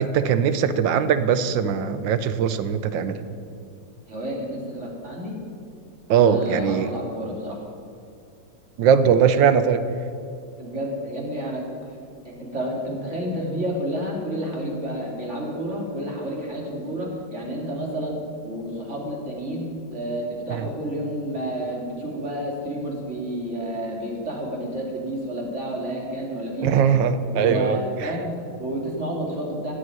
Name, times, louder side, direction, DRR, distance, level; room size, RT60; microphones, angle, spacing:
voice 1, 0.0-3.2 6.1-6.9 8.8-9.8 20.5-20.7 26.6-28.1, right 7 dB, 80° right, 12 dB, 1.5 m, -20 dB
voice 2, 4.1-5.4 6.1-7.6 10.6-11.6 12.2-26.8 27.2-29.7, equal, 35° right, -1 dB, 3.3 m, -30 dB
15.0 x 8.5 x 9.3 m, 2.5 s
omnidirectional pair, 2.0 m